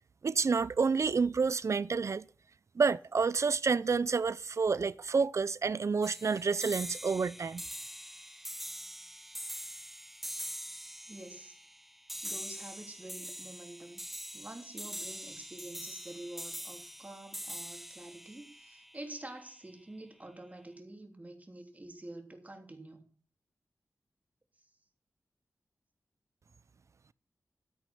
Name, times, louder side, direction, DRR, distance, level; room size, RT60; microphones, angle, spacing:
voice 1, 0.2-2.3 2.8-7.6, right 5 dB, 60° right, 0.6 m, -29 dB
sound 1, 6.0-19.5, equal, 5° right, 0.5 m, -44 dB
voice 2, 11.1-11.6 12.2-14.0 14.3-23.0, right 1 dB, 25° right, 3.2 m, -47 dB
13.0 x 9.1 x 6.0 m
cardioid pair, 60°, 6 cm